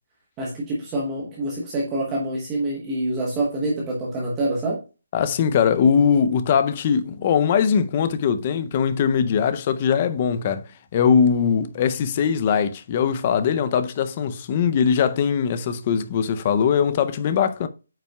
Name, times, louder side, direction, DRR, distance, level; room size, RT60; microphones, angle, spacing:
voice 1, 0.4-4.8, right 1 dB, 10° right, 1.0 m, -26 dB
voice 2, 5.1-17.7, left 7 dB, 20° left, 0.5 m, -21 dB
8.8 x 5.5 x 2.3 m
hypercardioid pair, 180°, 0 cm